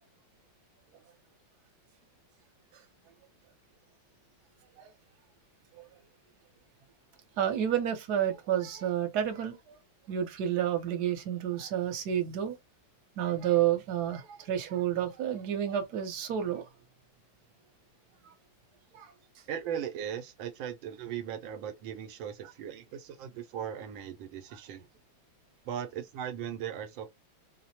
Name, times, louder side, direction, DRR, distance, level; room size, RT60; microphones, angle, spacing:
voice 1, 7.4-9.8 10.1-12.5 13.2-16.6 18.2-18.3 18.9-19.1, right 10 dB, 60° right, 1.3 m, -30 dB
voice 2, 19.5-24.9 25.6-27.1, right 9 dB, 85° right, 1.3 m, -38 dB
4.5 x 2.1 x 2.8 m
omnidirectional pair, 2.1 m